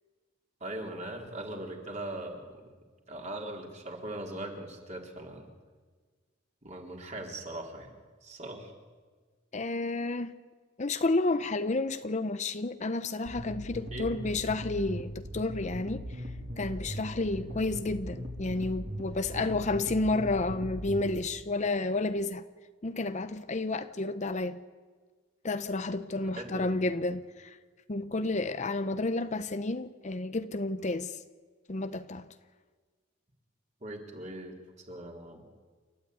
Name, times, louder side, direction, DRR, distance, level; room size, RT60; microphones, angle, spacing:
voice 1, 0.6-2.6 3.1-5.5 6.6-7.9 8.2-8.7 13.9-14.1 19.3-19.6 26.1-26.7 33.8-34.6 34.9-35.4, right 1 dB, 35° right, 3.7 m, -40 dB
voice 2, 9.5-10.3 10.8-16.0 16.6-22.4 22.8-24.6 25.4-27.6 27.9-31.2 31.7-32.3, left 2 dB, 35° left, 0.7 m, -31 dB
sound 1, 13.3-21.3, equal, 55° right, 3.8 m, -39 dB
29.0 x 13.0 x 9.5 m
head